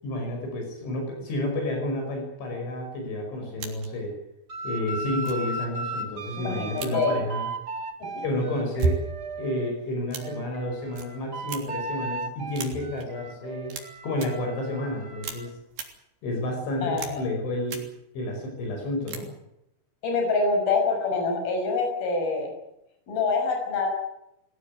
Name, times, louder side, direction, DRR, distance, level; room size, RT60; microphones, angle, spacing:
voice 1, 0.0-4.2 4.6-7.5 8.2-9.1 9.4-13.8 14.0-15.5 16.2-17.8 18.1-19.3, left 1 dB, 70° left, 2 dB, 7.9 m, -30 dB
sound 1, 3.6-4.0 4.7-4.8 5.2-5.5 6.8-7.1 8.6-9.2 10.1-10.4 10.9-11.1 11.5-11.9 12.5-13.1 13.7-13.8 14.1-14.3 15.2-15.4 15.7-15.9 17.0-17.3 17.6-17.8 19.1-19.2, right 4 dB, 50° right, 4.8 m, -32 dB
sound 2, 4.5-9.7 10.2-15.5, right 2 dB, 90° right, 0.8 m, -36 dB
voice 2, 6.4-7.2 8.0-8.2 16.8-17.2 20.0-22.5 23.1-23.9, left 4 dB, 50° left, 2 dB, 7.8 m, -26 dB
23.0 x 17.0 x 9.8 m, 0.83 s
omnidirectional pair, 5.6 m